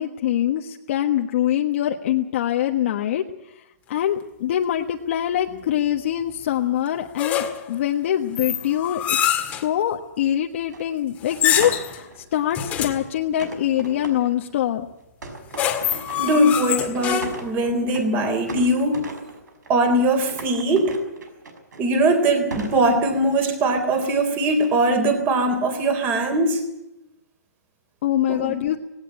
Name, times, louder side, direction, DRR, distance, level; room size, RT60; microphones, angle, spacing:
voice 1, 0.0-3.2 3.9-14.9 17.1-17.2 28.0-28.8, left 11 dB, 45° left, 2 dB, 1.4 m, -24 dB
sound 1, 7.2-7.7 8.4-9.7 11.3-12.0 12.5-13.1 15.3-17.6, left 10 dB, 15° left, 1.9 m, -25 dB
sound 2, 10.7-10.9 11.6-12.7 13.4-14.6 15.2-16.8 17.1-18.2 18.5-19.9 20.3-22.1 22.5-23.5 24.6-25.0 25.4-25.8, right 3 dB, 85° right, 5.7 m, -37 dB
voice 2, 16.2-19.0 19.7-21.0 21.8-26.6 28.3-28.5, right 1 dB, 20° right, 8 dB, 3.7 m, -21 dB
18.5 x 17.5 x 8.6 m, 0.88 s
hypercardioid pair, 165°, 9 cm